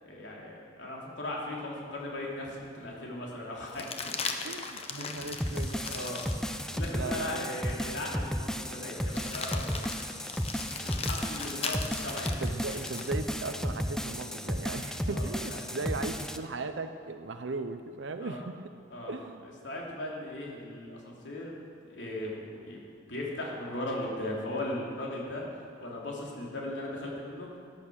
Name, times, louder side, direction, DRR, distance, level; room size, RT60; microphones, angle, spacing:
voice 1, 0.0-5.3 5.9-6.2 6.7-9.8 10.8-12.3 15.1-15.6 18.2-18.4 18.9-19.2 19.6-21.5 21.8-22.8 23.1-25.4 25.8-27.5, left 1 dB, 75° left, -3 dB, 3.1 m, -38 dB
sound 1, 2.1-2.2 3.7-7.1 7.7-7.8 9.1-13.2 15.3-16.2, left 5 dB, 30° left, 0.9 m, -39 dB
voice 2, 4.4-6.1 6.9-7.6 12.4-18.6 19.1-19.5, right 3 dB, 75° right, 8 dB, 0.6 m, -38 dB
sound 2, 5.4-16.4, equal, 5° left, 0.5 m, -34 dB
14.0 x 10.5 x 6.3 m, 2.3 s
head